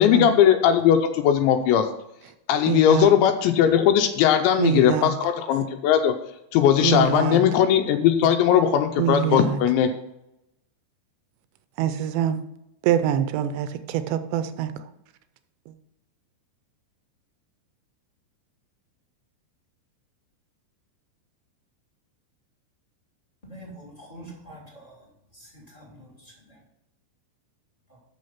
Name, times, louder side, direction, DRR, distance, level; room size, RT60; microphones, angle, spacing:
voice 1, 0.0-1.9 2.5-6.1 6.5-9.9, left 9 dB, 85° left, 6 dB, 2.9 m, -19 dB
voice 2, 2.7-3.2 4.6-5.1 6.8-7.4 9.0-9.6 11.8-12.4 12.8-14.8 15.7-15.8, right 10 dB, 80° right, 11 dB, 2.8 m, -25 dB
voice 3, 23.4-25.1 25.3-26.6, right 1 dB, 15° left, -3 dB, 1.2 m, -45 dB
8.5 x 6.3 x 5.7 m, 0.85 s
omnidirectional pair, 5.2 m